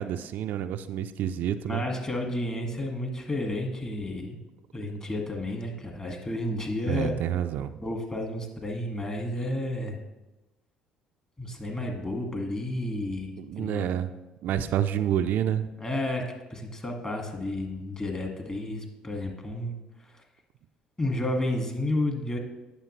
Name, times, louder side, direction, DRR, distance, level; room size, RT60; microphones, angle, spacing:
voice 1, 0.0-1.8 6.9-7.8 13.4-14.1 14.4-15.7, right 10 dB, 60° right, 9 dB, 0.4 m, -28 dB
voice 2, 1.6-4.4 4.7-7.1 7.8-10.0 11.4-13.3 13.6-13.9 15.8-16.2 16.5-19.8 21.0-22.4, left 1 dB, 25° left, 2 dB, 1.9 m, -31 dB
9.0 x 6.8 x 3.2 m, 1.0 s
hypercardioid pair, 65°, 3 cm